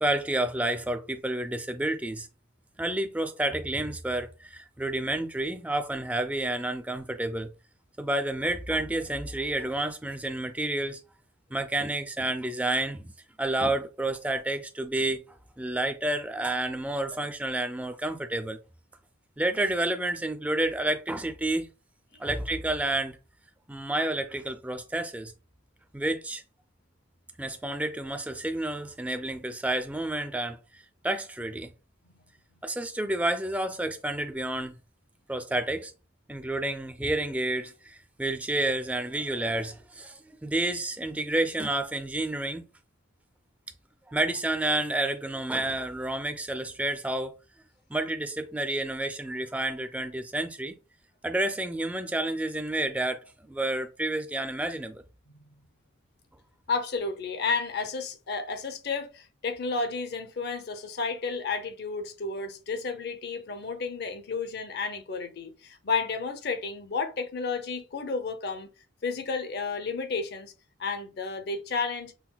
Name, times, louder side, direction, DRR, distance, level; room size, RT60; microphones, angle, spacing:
voice 1, 0.0-2.3 2.8-7.5 8.0-11.0 11.5-13.1 13.4-15.2 15.6-18.6 19.4-21.7 22.2-23.2 23.7-25.3 25.9-26.4 27.4-31.7 32.6-34.7 35.3-35.9 36.3-42.6 44.1-47.3 47.9-50.7 51.2-55.0, right 1 dB, 5° right, 0.3 m, -30 dB
voice 2, 56.7-68.7 69.0-70.5 70.8-72.1, left 4 dB, 50° left, 0.6 m, -32 dB
5.7 x 2.2 x 2.2 m
head